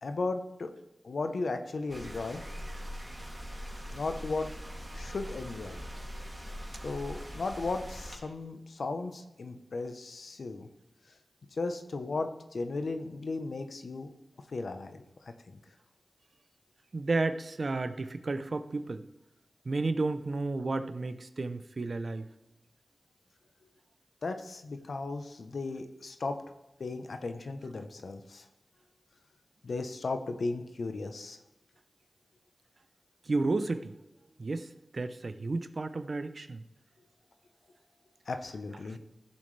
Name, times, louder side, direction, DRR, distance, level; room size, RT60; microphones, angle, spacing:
voice 1, 0.0-0.7 1.0-2.4 3.9-4.5 4.9-5.8 6.7-10.7 11.6-14.1 14.5-15.0 15.5-15.6 24.2-26.4 26.8-28.4 29.6-31.4 38.3-39.0, left 3 dB, 75° left, 7 dB, 0.9 m, -35 dB
sound 1, 1.9-8.2, equal, 20° right, 2.6 m, -42 dB
voice 2, 16.9-19.0 19.7-22.3 33.3-33.9 34.4-34.7 34.9-36.6, right 3 dB, 60° right, 11 dB, 0.7 m, -32 dB
15.5 x 7.2 x 3.3 m, 0.92 s
cardioid pair, 50°, 0 cm